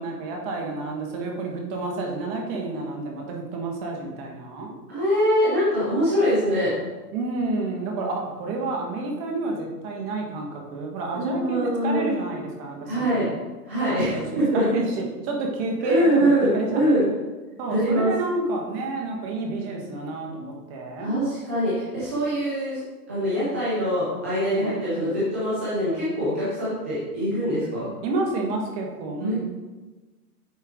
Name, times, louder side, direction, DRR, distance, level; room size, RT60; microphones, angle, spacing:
voice 1, 0.0-4.7 7.1-13.3 13.9-16.9 17.6-21.2 24.4-25.1 28.0-29.4, right 2 dB, 30° right, 1 dB, 1.4 m, -30 dB
voice 2, 4.9-6.7 11.1-12.0 12.8-13.3 13.6-14.7 15.8-17.0 17.7-18.1 21.0-22.8 23.1-27.9 29.2-29.3, equal, 10° right, -10 dB, 0.3 m, -23 dB
9.1 x 4.4 x 3.6 m, 1.2 s
hypercardioid pair, 145°, 48 cm